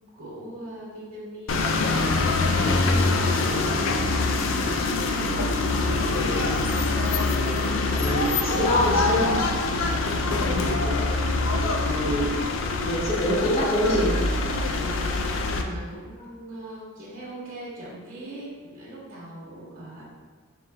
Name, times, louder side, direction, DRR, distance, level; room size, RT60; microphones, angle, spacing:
voice 1, 0.1-1.8 2.0-6.6 7.4-9.9 14.8-20.0, right 1 dB, 40° right, -10 dB, 1.2 m, -41 dB
sound 1, 1.5-15.6, left 3 dB, 75° left, 0.4 m, -24 dB
voice 2, 7.9-9.5 10.2-11.0 11.9-12.4 12.8-14.2, equal, 30° left, -6 dB, 0.9 m, -25 dB
5.3 x 3.6 x 2.2 m, 1.5 s
head